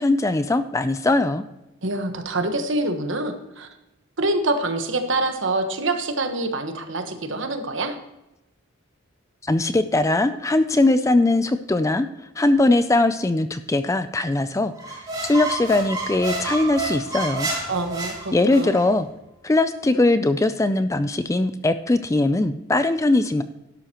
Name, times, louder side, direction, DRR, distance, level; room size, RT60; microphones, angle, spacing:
voice 1, 0.0-1.4 9.4-12.1 12.4-17.5 18.3-19.1 19.4-23.4, left 2 dB, 15° left, 12 dB, 0.3 m, -20 dB
voice 2, 1.8-3.7 4.2-8.0 17.7-18.8, right 2 dB, 60° right, 6 dB, 1.2 m, -26 dB
sound 1, 14.8-18.8, right 3 dB, 20° right, 3.1 m, -29 dB
12.0 x 11.5 x 3.0 m, 0.94 s
head